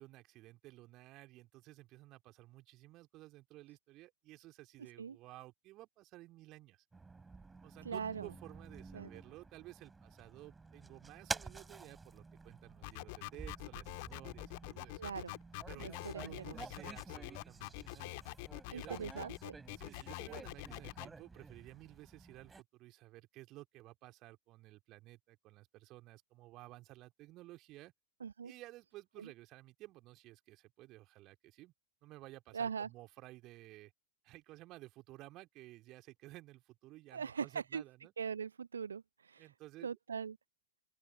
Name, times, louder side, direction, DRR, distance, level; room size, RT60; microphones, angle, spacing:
voice 1, 0.0-6.8 7.6-15.1 15.7-18.1 18.7-19.1 19.8-27.9 28.4-31.7 32.0-33.9 34.2-38.1 39.4-39.9, right 18 dB, 35° right, 3.2 m, -55 dB
sound 1, 6.9-22.6, right 4 dB, 10° right, 3.9 m, -50 dB
voice 2, 7.8-8.3 8.9-9.1 15.0-15.4 15.8-16.5 18.7-19.5 28.2-28.5 29.2-29.3 32.5-32.9 37.1-37.8 38.2-39.5 39.8-40.4, right 6 dB, 70° right, 0.5 m, -41 dB
sound 2, 12.8-21.1, left 28 dB, 45° left, 1.7 m, -45 dB
open air
figure-of-eight pair, 90°, 0 cm